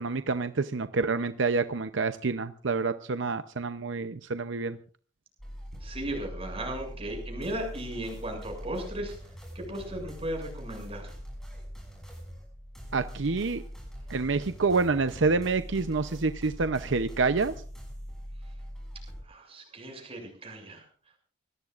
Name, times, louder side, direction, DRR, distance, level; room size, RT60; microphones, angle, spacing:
voice 1, 0.0-4.8 12.9-13.6 14.1-17.5, right 4 dB, 75° right, 10 dB, 0.7 m, -27 dB
sound 1, 5.4-19.2, equal, 5° left, 7.2 m, -42 dB
voice 2, 5.8-9.1 9.6-11.1 19.3-20.8, right 1 dB, 30° right, 2 dB, 7.0 m, -36 dB
25.0 x 18.0 x 2.5 m, 0.42 s
head